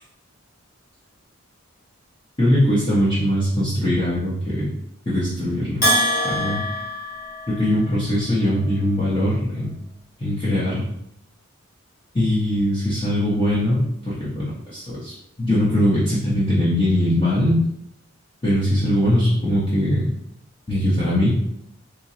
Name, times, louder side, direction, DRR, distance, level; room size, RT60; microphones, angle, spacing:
voice 1, 2.4-4.7 5.1-5.8 6.2-6.6 7.5-9.7 10.2-10.9 12.1-15.1 15.4-17.6 18.4-20.1 20.7-21.3, left 1 dB, 25° left, -10 dB, 1.0 m, -21 dB
Bell, 5.8-8.0, equal, 40° left, 1.6 m, -23 dB
4.4 x 3.1 x 2.8 m, 0.76 s
head